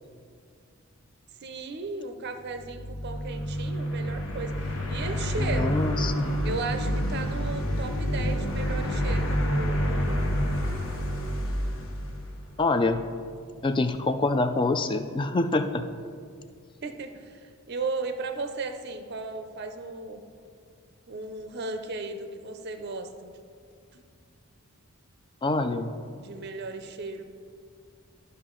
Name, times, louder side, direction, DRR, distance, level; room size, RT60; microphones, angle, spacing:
voice 1, 1.4-5.8 6.4-10.4 16.8-20.2 21.1-23.3 23.9-24.0 26.1-27.2, right 3 dB, 50° right, 7 dB, 0.5 m, -36 dB
sound 1, 2.5-12.8, equal, 65° left, 1.2 m, -29 dB
sound 2, 4.6-16.4, equal, 80° left, 1.9 m, -43 dB
voice 2, 5.4-6.3 12.6-13.0 13.6-15.9 25.4-25.9, left 2 dB, 20° left, 9 dB, 0.3 m, -26 dB
12.0 x 5.5 x 3.8 m, 2.3 s
head